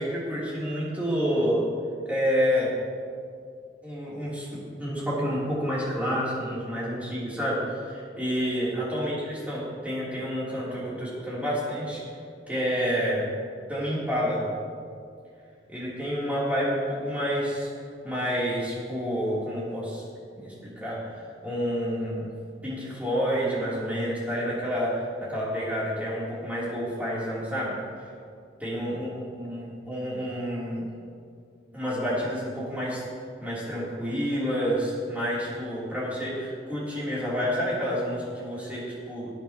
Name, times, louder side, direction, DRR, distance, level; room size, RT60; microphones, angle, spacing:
voice 1, 0.0-1.6 2.0-2.7 3.8-12.0 12.5-13.3 13.7-14.4 15.7-17.7 18.0-20.0 20.3-22.3 22.6-28.1 28.6-30.9 31.7-33.0 33.4-39.3, equal, 10° right, -9 dB, 3.4 m, -29 dB
20.0 x 8.6 x 3.0 m, 2.3 s
head